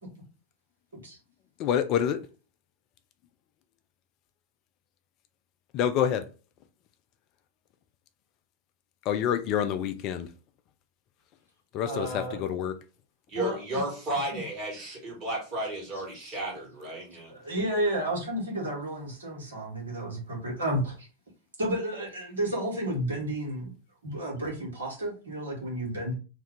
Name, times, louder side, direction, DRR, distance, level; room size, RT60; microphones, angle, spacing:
voice 1, 1.6-2.2 5.7-6.3 9.1-10.3 11.7-12.8, left 9 dB, 40° left, 0.3 m, -27 dB
voice 2, 11.8-12.4 13.3-13.8 14.3-14.4 17.3-21.1 21.6-23.7 24.0-26.1, right 1 dB, 70° right, 1.2 m, -32 dB
voice 3, 13.3-17.3, right 1 dB, 30° right, 1.5 m, -33 dB
2.6 x 2.2 x 3.5 m
figure-of-eight pair, 90°, 0 cm